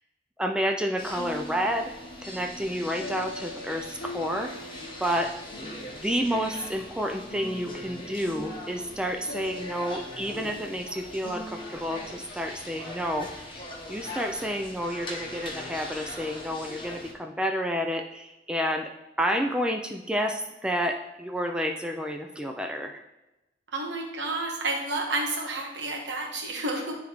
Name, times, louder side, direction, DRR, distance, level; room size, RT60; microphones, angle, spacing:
voice 1, 0.4-1.9 2.2-4.5 5.0-5.3 6.0-13.6 13.9-18.9 19.2-23.0, equal, 5° right, 3 dB, 0.3 m, -30 dB
sound 1, 1.0-17.1, left 1 dB, 30° left, 0.9 m, -41 dB
sound 2, 1.2-12.1, left 1 dB, 85° left, 0.8 m, -43 dB
voice 2, 23.7-27.0, right 2 dB, 85° right, 0 dB, 1.3 m, -30 dB
9.9 x 3.5 x 3.0 m, 0.98 s
head